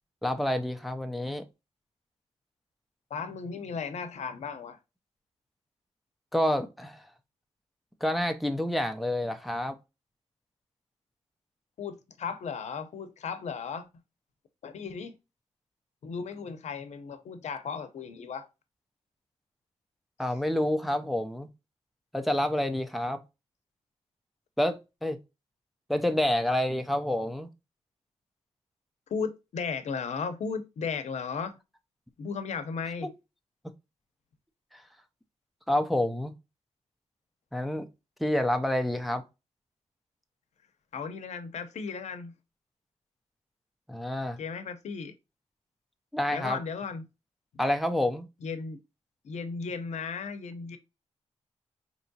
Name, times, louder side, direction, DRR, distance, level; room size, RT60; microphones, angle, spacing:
voice 1, 0.2-1.4 6.3-7.0 8.0-9.8 20.2-21.5 22.1-23.2 24.6-25.2 25.9-27.5 34.7-34.8 35.7-36.3 37.5-37.9 38.2-39.2 43.9-44.4 46.1-46.6 47.6-48.3, left 1 dB, ahead, 0.5 m, -28 dB
voice 2, 3.1-4.8 11.8-13.9 14.6-15.1 16.0-18.5 29.1-31.6 32.2-33.1 40.9-42.3 44.4-45.1 46.3-47.1 48.4-48.8 49.2-50.8, left 5 dB, 85° left, 0.6 m, -35 dB
4.5 x 2.9 x 2.7 m
wide cardioid pair, 115°, 12 cm